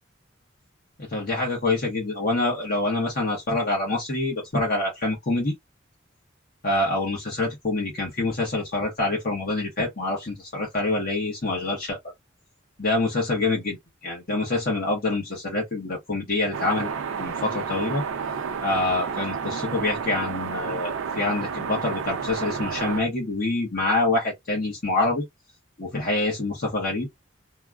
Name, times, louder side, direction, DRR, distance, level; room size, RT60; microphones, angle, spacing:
voice 1, 1.0-5.5 6.6-12.0 12.8-16.9 17.2-18.0 18.6-25.2 25.8-27.1, left 2 dB, 45° left, 1.1 m, -26 dB
sound 1, 16.5-23.0, right 6 dB, 90° right, 0.5 m, -31 dB
2.9 x 2.3 x 2.3 m
head